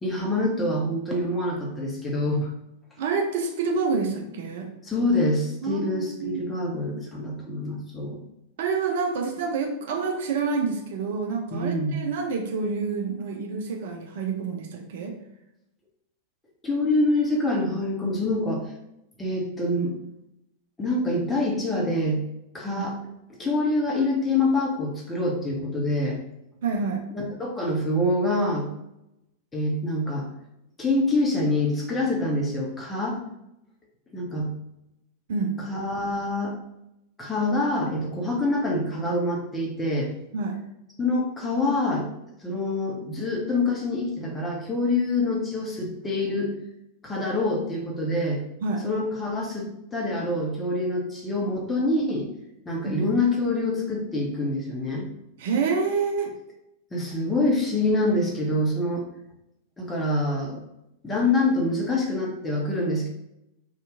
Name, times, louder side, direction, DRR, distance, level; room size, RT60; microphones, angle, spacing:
voice 1, 0.0-2.5 4.1-4.2 4.8-8.2 11.5-12.0 16.6-18.6 19.2-19.9 20.8-22.2 22.5-22.9 23.4-26.2 27.1-28.7 29.5-30.3 30.8-33.2 34.1-34.5 35.7-36.5 37.2-40.1 41.0-42.1 42.4-46.5 47.0-48.4 48.8-52.2 52.6-55.1 56.9-59.1 59.8-60.6 61.0-63.1, left 2 dB, 15° left, -2 dB, 0.9 m, -25 dB
voice 2, 3.0-4.7 5.6-6.4 8.6-15.1 22.8-22.9 26.6-27.0 35.3-35.6 40.3-40.6 48.6-48.9 52.8-53.0 55.4-56.3, right 4 dB, 55° right, 2 dB, 0.5 m, -27 dB
2.8 x 2.4 x 3.5 m, 0.84 s
figure-of-eight pair, 90°, 0 cm